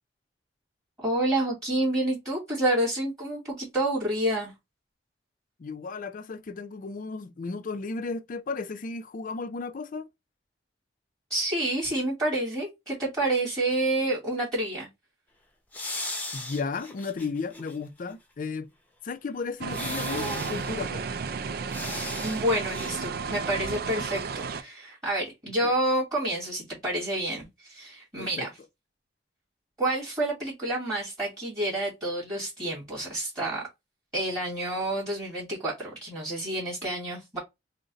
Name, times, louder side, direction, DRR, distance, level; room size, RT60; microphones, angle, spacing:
voice 1, 1.0-4.5 11.3-14.9 22.2-28.5 29.8-33.6 34.1-37.4, right 1 dB, 20° right, 1.9 m, -29 dB
voice 2, 5.6-10.1 16.3-18.7 19.0-21.1 24.0-24.1 25.6-25.7 28.2-28.5, left 4 dB, 50° left, 0.4 m, -34 dB
sound 1, 15.7-17.8 18.1-18.2 19.7-20.7 21.7-22.4 22.7-23.0, left 2 dB, 10° left, 0.8 m, -36 dB
sound 2, 19.6-24.6, right 5 dB, 55° right, 0.4 m, -33 dB
3.8 x 2.2 x 3.9 m
head